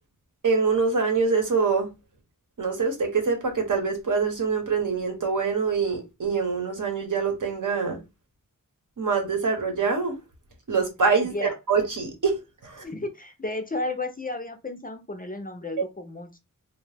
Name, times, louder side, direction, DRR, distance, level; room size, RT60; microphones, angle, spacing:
voice 1, 0.4-1.9 2.6-8.0 9.0-10.1 10.7-12.8, right 5 dB, 65° right, 0.9 m, -25 dB
voice 2, 12.8-16.4, left 2 dB, 25° left, 0.4 m, -33 dB
2.7 x 2.0 x 3.3 m
wide cardioid pair, 85°, 34 cm